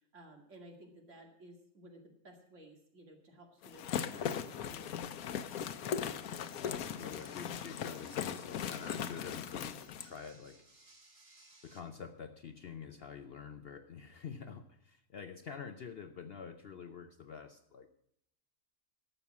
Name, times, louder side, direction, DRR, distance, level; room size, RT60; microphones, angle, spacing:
voice 1, 0.0-5.1, right 1 dB, 60° right, 2 dB, 2.5 m, -56 dB
sound 1, 3.6-10.1, left 8 dB, 85° left, 1.2 m, -39 dB
sound 2, 5.5-11.8, right 2 dB, 35° right, 1.9 m, -63 dB
voice 2, 6.6-10.8 11.6-17.9, left 6 dB, 55° left, 9 dB, 0.7 m, -47 dB
12.0 x 7.3 x 8.2 m, 0.75 s
omnidirectional pair, 1.5 m